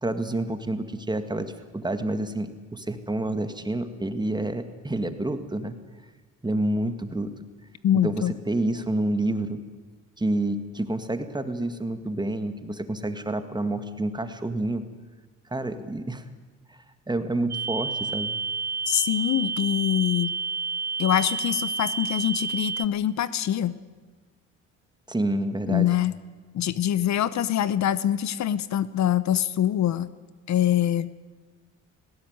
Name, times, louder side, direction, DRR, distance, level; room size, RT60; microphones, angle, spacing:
voice 1, 0.0-5.8 6.4-7.3 7.9-9.6 10.2-14.8 15.5-16.2 16.7-16.8 17.1-18.4 25.1-25.9, right 1 dB, 15° right, 9 dB, 1.9 m, -28 dB
voice 2, 7.8-8.3 18.9-20.4 21.0-23.8 25.7-26.1 26.5-30.1 30.5-31.1, left 11 dB, 65° left, 16 dB, 0.9 m, -24 dB
sound 1, 17.5-22.9, right 5 dB, 30° right, 0.8 m, -30 dB
19.0 x 16.5 x 9.5 m, 1.4 s
cardioid pair, 90°, 30 cm